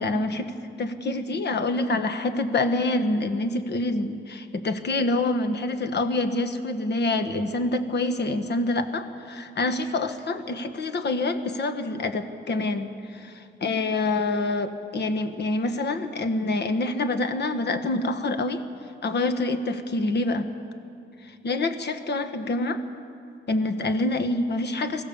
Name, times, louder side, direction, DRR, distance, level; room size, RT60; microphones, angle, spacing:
voice 1, 0.0-18.6 19.0-20.5 21.2-22.8 23.5-25.0, left 2 dB, 55° left, 9 dB, 1.3 m, -26 dB
24.0 x 15.0 x 7.2 m, 2.5 s
wide cardioid pair, 115°, 21 cm